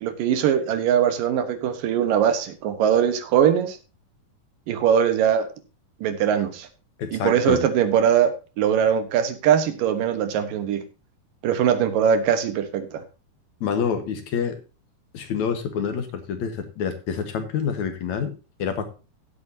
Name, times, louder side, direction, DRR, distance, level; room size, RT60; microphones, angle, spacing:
voice 1, 0.0-3.8 4.7-5.5 6.0-6.7 7.1-10.8 11.4-13.0, right 8 dB, 80° right, 9 dB, 2.9 m, -21 dB
voice 2, 7.0-7.6 13.6-14.6 15.1-18.3 18.6-18.9, left 7 dB, 65° left, 7 dB, 2.5 m, -27 dB
16.0 x 8.3 x 2.8 m, 0.31 s
omnidirectional pair, 3.9 m